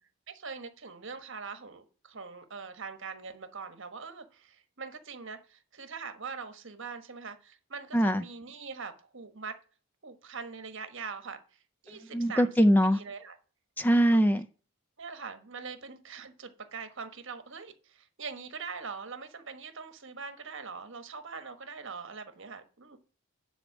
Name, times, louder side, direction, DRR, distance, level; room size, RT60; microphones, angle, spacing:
voice 1, 0.3-9.6 10.0-11.4 11.8-12.5 12.9-13.4 14.1-14.2 15.0-23.0, right 5 dB, 60° right, 1.3 m, -42 dB
voice 2, 7.9-8.2 12.1-13.0 13.8-14.4, equal, 10° left, 0.4 m, -22 dB
10.0 x 4.2 x 7.1 m
head